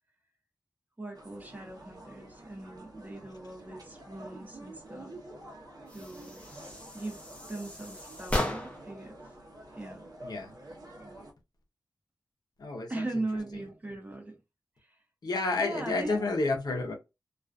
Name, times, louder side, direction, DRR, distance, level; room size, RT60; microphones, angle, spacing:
voice 1, 1.0-5.1 5.9-6.4 6.9-7.2 7.5-9.2 9.7-10.0 11.0-11.2 12.9-14.4 14.8-15.0 15.6-16.4, right 2 dB, 20° right, 0.7 m, -39 dB
sound 1, 1.1-11.3, right 1 dB, 55° right, 0.8 m, -49 dB
sound 2, 5.9-9.0, left 1 dB, 15° left, 0.6 m, -36 dB
voice 2, 12.6-12.9 15.2-16.9, left 3 dB, 60° left, 0.7 m, -30 dB
2.4 x 2.3 x 2.4 m
wide cardioid pair, 115°, 7 cm